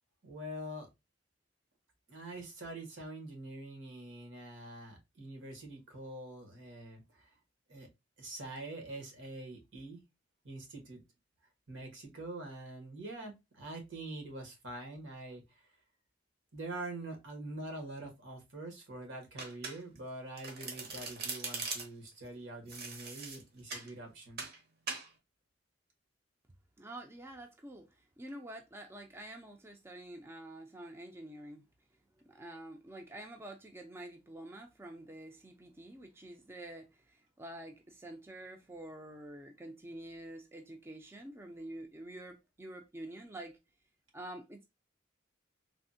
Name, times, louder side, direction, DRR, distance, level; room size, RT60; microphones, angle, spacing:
voice 1, 0.2-0.9 2.1-7.3 7.7-7.9 8.2-10.0 10.4-11.0 11.7-15.7 16.5-24.4, right 2 dB, 80° right, 1.1 m, -45 dB
Domestic sounds home sounds, 19.4-20.1 20.4-22.1 22.7-23.9 24.4-24.6 24.9-25.1, right 4 dB, 55° right, 0.8 m, -41 dB
voice 2, 26.8-27.9 28.2-31.6 32.3-43.6 44.1-44.6, right 1 dB, 15° right, 0.4 m, -47 dB
3.4 x 2.1 x 2.5 m
head